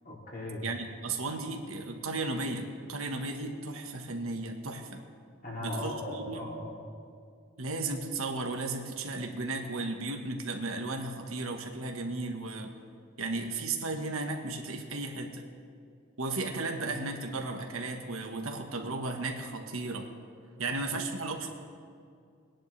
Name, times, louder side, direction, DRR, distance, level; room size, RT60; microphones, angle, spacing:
voice 1, 0.0-0.6 5.4-6.8 16.8-16.9 20.6-21.0, left 1 dB, 45° left, -4 dB, 3.0 m, -38 dB
voice 2, 0.6-5.0 5.6-5.9 6.3-6.4 7.6-12.7 13.2-15.4 16.2-20.1 20.6-21.5, right 3 dB, 80° right, 3 dB, 1.3 m, -35 dB
20.5 x 10.5 x 3.3 m, 2.3 s
head